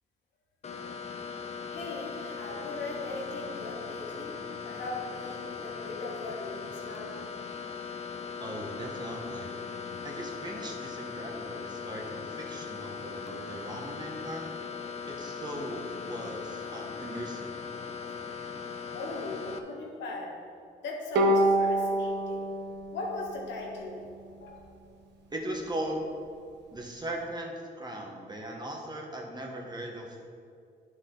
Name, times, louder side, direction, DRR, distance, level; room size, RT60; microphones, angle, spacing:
sound 1, 0.6-19.6, left 6 dB, 35° left, 0.7 m, -39 dB
voice 1, 1.7-7.1 18.9-20.4 20.8-22.5 22.9-24.6, left 2 dB, 80° left, -2 dB, 1.9 m, -39 dB
voice 2, 8.4-9.5 10.0-14.5 15.1-17.5 25.3-26.1 26.7-30.2, right 1 dB, 25° right, 0 dB, 1.3 m, -38 dB
Bowed string instrument, 21.1-24.5, right 1 dB, 75° right, 1.1 m, -28 dB
10.0 x 6.3 x 3.9 m, 2.3 s
cardioid pair, 100°, 18 cm